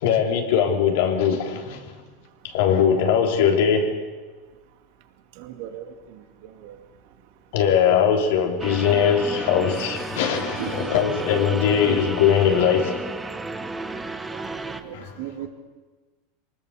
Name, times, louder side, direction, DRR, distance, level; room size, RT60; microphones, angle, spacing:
voice 1, 0.0-2.0 2.4-4.0 7.5-13.0 14.9-15.1, left 7 dB, 70° left, 3.4 m, -21 dB
sound 1, 8.6-14.8, right 3 dB, 15° right, 1.5 m, -33 dB
voice 2, 14.8-15.5, right 13 dB, 65° right, 2.5 m, -34 dB
24.0 x 20.0 x 6.8 m
hypercardioid pair, 105°, 0 cm